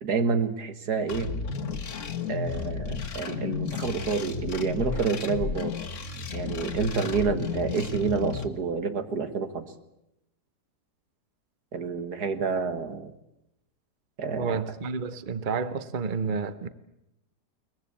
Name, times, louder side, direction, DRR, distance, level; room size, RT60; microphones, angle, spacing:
voice 1, 0.0-1.3 2.3-5.8 6.3-9.7 11.7-13.1 14.2-14.6, right 5 dB, 70° right, 2.1 m, -28 dB
sound 1, 1.1-8.5, left 5 dB, 50° left, 1.7 m, -33 dB
voice 2, 14.4-16.7, right 5 dB, 35° right, 0.9 m, -30 dB
22.5 x 20.5 x 8.5 m
omnidirectional pair, 1.8 m